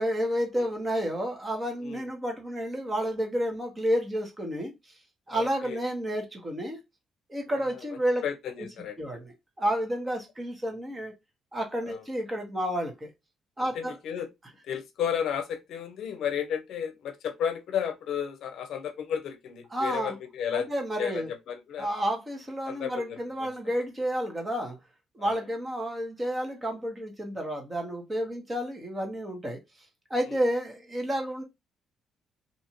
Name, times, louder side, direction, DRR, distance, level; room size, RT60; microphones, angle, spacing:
voice 1, 0.0-4.7 5.3-6.8 7.3-8.2 8.6-8.7 9.0-11.1 11.5-13.1 13.6-14.0 19.7-20.2 20.5-21.3 21.8-24.8 25.1-29.6 30.1-31.4, equal, 20° right, 1.1 m, -30 dB
voice 2, 5.3-5.8 7.6-7.8 8.2-9.2 11.9-12.0 13.7-14.3 14.6-20.7 21.0-21.9 22.7-23.5 25.2-25.4 30.3-30.4, left 8 dB, 75° left, 0.6 m, -33 dB
2.7 x 2.5 x 2.9 m
cardioid pair, 90°, 0 cm